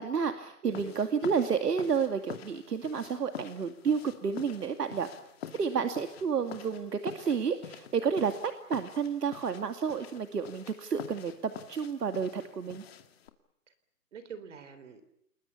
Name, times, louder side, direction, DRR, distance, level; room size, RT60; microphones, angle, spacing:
voice 1, 0.0-5.1 5.6-12.8, right 6 dB, 80° right, 7 dB, 2.5 m, -31 dB
voice 2, 0.6-1.0 5.5-5.8 12.6-12.8 14.1-15.0, right 6 dB, 50° right, 12 dB, 4.1 m, -46 dB
sound 1, 0.7-13.3, left 9 dB, 40° left, 2.4 m, -47 dB
29.5 x 21.0 x 7.2 m, 0.78 s
hypercardioid pair, 165°, 47 cm